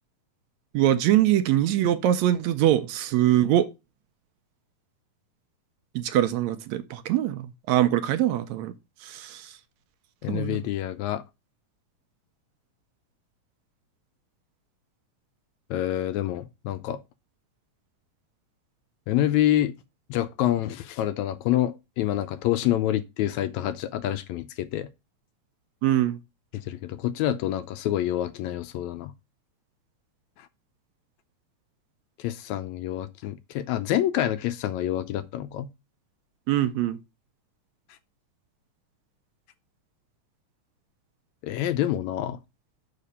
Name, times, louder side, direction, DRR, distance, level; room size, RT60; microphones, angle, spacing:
voice 1, 0.7-3.7 6.0-8.7 9.0-9.6 10.3-10.6 25.8-26.2 36.5-37.0, right 12 dB, 80° right, 1.8 m, -23 dB
voice 2, 10.2-11.2 15.7-17.0 19.1-19.7 20.1-24.9 26.7-29.1 32.2-35.7 41.4-42.4, left 12 dB, 80° left, 1.8 m, -27 dB
6.7 x 5.1 x 5.5 m
omnidirectional pair, 3.5 m